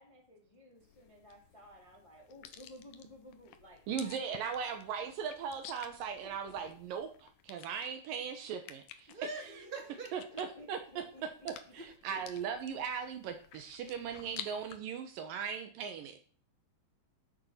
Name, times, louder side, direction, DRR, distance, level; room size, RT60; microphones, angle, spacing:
voice 1, 0.0-4.3 4.5-4.9 6.2-6.7 10.3-11.7, left 1 dB, 20° left, 0 dB, 0.9 m, -55 dB
sound 1, 0.8-14.8, left 10 dB, 85° left, 2.0 m, -53 dB
voice 2, 3.9-9.1 10.1-16.2, right 7 dB, 90° right, 7 dB, 1.9 m, -39 dB
voice 3, 9.1-10.4 11.7-12.2, right 3 dB, 20° right, 2 dB, 1.3 m, -45 dB
16.5 x 7.1 x 5.7 m, 0.43 s
omnidirectional pair, 5.6 m